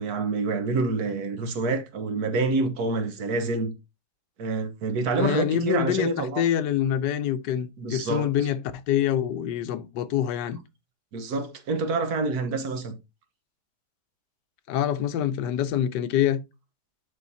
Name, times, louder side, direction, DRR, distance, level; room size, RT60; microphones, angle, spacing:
voice 1, 0.0-3.7 4.4-6.4 7.8-8.3 11.1-12.9, right 3 dB, 65° right, 1.4 m, -27 dB
voice 2, 5.2-10.6 14.7-16.4, left 10 dB, 85° left, 1.3 m, -26 dB
11.0 x 3.8 x 2.7 m
omnidirectional pair, 1.8 m